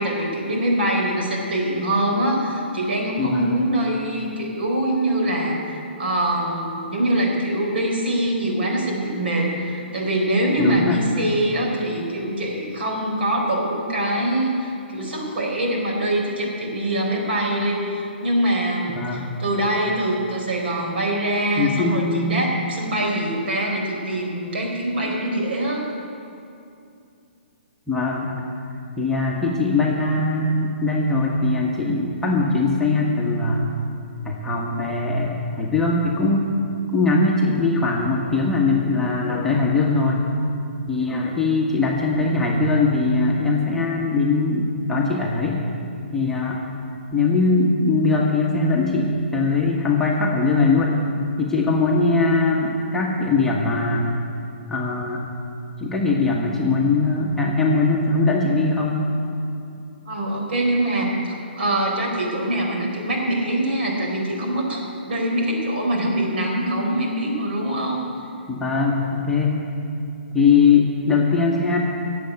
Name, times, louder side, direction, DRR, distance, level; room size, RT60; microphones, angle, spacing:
voice 1, 0.0-25.9 60.1-68.0, right 1 dB, 65° right, -1 dB, 4.2 m, -24 dB
voice 2, 3.2-3.5 10.6-11.0 18.9-19.3 21.6-22.5 27.9-28.3 29.0-33.6 34.2-36.5 36.9-40.2 40.9-45.6 46.1-46.6 47.1-50.9 51.4-54.1 54.7-55.2 55.8-59.0 68.5-69.6 70.3-71.8, left 3 dB, 5° left, -3 dB, 1.5 m, -21 dB
14.0 x 7.9 x 9.4 m, 2.5 s
figure-of-eight pair, 130°, 6 cm